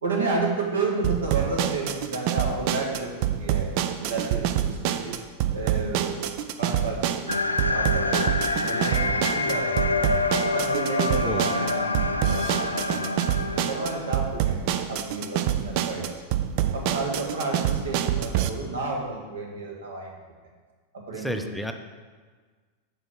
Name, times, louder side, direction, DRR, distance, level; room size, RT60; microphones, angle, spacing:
voice 1, 0.0-3.7 4.0-5.2 5.5-6.2 6.6-8.2 8.6-10.1 10.5-11.9 12.2-14.6 14.9-16.1 16.7-20.1 20.9-21.7, right 3 dB, 65° right, 0 dB, 1.6 m, -31 dB
sound 1, 1.0-18.5, right 10 dB, 45° right, 0.5 m, -27 dB
sound 2, 7.3-14.4, left 3 dB, 80° left, 0.4 m, -27 dB
voice 2, 21.1-21.7, equal, ahead, 5 dB, 0.6 m, -31 dB
7.6 x 4.6 x 6.1 m, 1.5 s
figure-of-eight pair, 90°, 0 cm